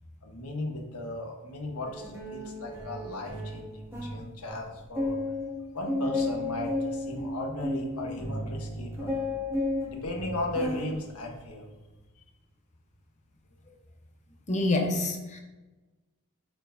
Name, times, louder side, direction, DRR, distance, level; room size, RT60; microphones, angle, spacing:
voice 1, 0.2-5.2 5.7-9.2 9.8-11.6, left 2 dB, 85° left, 1 dB, 1.2 m, -36 dB
sound 1, 1.9-4.2 4.6-4.7 5.0-10.9 11.3-11.7, left 1 dB, 10° right, 1.9 m, -33 dB
voice 2, 14.5-15.4, left 2 dB, 35° left, 3 dB, 0.8 m, -27 dB
8.9 x 4.6 x 2.7 m, 1.1 s
head